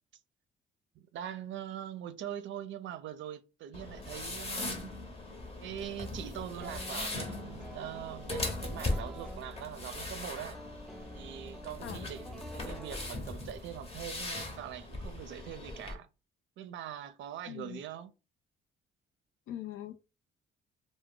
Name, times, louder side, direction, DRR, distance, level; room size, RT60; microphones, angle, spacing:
voice 1, 1.0-5.0 5.6-10.6 11.1-16.1 16.6-18.1, right 10 dB, 70° right, 0.4 m, -42 dB
sound 1, 3.7-15.9, left 2 dB, 30° left, 0.8 m, -39 dB
sound 2, 6.6-13.7, equal, ahead, 0.4 m, -50 dB
voice 2, 17.5-17.8 19.5-20.0, left 11 dB, 85° left, 0.5 m, -42 dB
2.2 x 2.0 x 3.5 m
cardioid pair, 90°, 20 cm